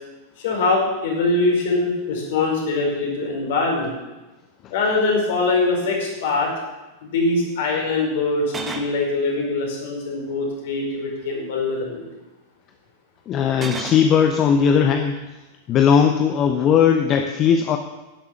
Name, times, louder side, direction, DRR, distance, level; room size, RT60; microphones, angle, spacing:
voice 1, 0.4-3.9 4.7-6.5 7.0-12.0, left 3 dB, 55° left, 0 dB, 4.9 m, -22 dB
sound 1, 5.8-6.0 8.4-9.0 10.2-10.7 13.5-14.1, right 4 dB, 20° right, 1.3 m, -33 dB
voice 2, 13.3-15.1 15.7-17.8, left 7 dB, 30° left, 6 dB, 0.9 m, -18 dB
11.5 x 11.0 x 7.1 m, 1.1 s
figure-of-eight pair, 90°, 0 cm